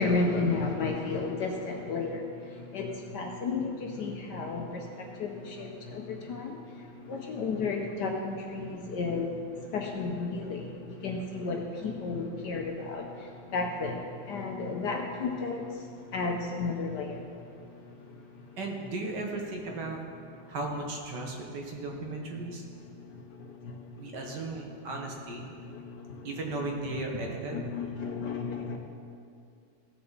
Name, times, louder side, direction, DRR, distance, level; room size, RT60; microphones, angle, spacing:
voice 1, 0.0-2.2 2.6-6.6 7.0-9.3 9.7-15.7 16.1-17.2 23.4-23.7 25.7-26.1 27.7-28.8, left 3 dB, 65° left, 2 dB, 1.2 m, -32 dB
voice 2, 18.6-20.0 20.5-22.6 23.9-25.5 26.2-27.6, right 2 dB, 55° right, 0 dB, 1.7 m, -36 dB
16.0 x 6.7 x 4.0 m, 2.4 s
omnidirectional pair, 2.3 m